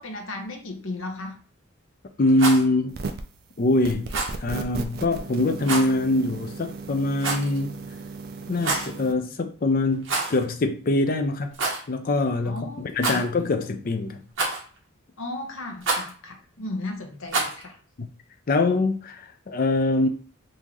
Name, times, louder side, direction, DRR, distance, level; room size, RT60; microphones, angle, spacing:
voice 1, 0.0-1.4 12.4-13.2 15.2-17.8, left 2 dB, 70° left, 0.9 m, -35 dB
voice 2, 2.2-3.0 3.6-4.1 4.4-7.8 8.5-11.5 11.9-14.2 18.0-18.1 18.5-20.1, left 2 dB, 40° left, 0.4 m, -23 dB
Rattle, 2.2-2.6 4.1-4.4 5.6-5.9 7.2-7.6 8.5-8.9 10.0-10.4 10.7-10.8 11.5-11.8 13.0-13.5 14.4-14.8 15.8-16.1 17.3-17.6, right 3 dB, 65° right, 1.1 m, -27 dB
sound 1, 2.9-3.4 3.8-9.1, right 4 dB, 45° right, 0.4 m, -36 dB
3.6 x 2.7 x 3.0 m
head